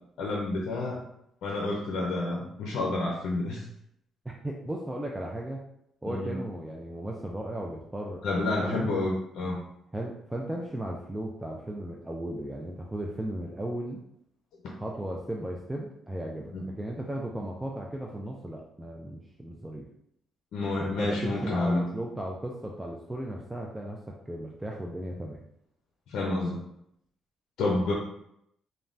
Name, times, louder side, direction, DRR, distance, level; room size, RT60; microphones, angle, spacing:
voice 1, 0.2-1.0 1.4-3.6 6.1-6.3 8.2-9.6 16.5-16.6 20.5-21.9 26.1-26.6 27.6-27.9, left 2 dB, 75° left, -2 dB, 0.5 m, -29 dB
voice 2, 4.3-5.6 6.0-8.9 9.9-14.0 14.8-19.9 20.8-25.4, right 1 dB, 10° right, -1 dB, 0.3 m, -36 dB
3.1 x 2.2 x 2.5 m, 0.76 s
cardioid pair, 100°, 0 cm